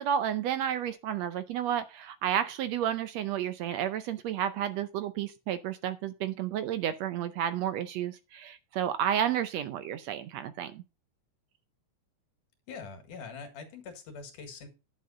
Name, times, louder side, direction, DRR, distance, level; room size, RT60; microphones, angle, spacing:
voice 1, 0.0-10.8, right 10 dB, 75° right, 1.7 m, -31 dB
voice 2, 12.7-14.7, left 5 dB, 90° left, 3.4 m, -43 dB
10.5 x 6.6 x 5.4 m
omnidirectional pair, 3.5 m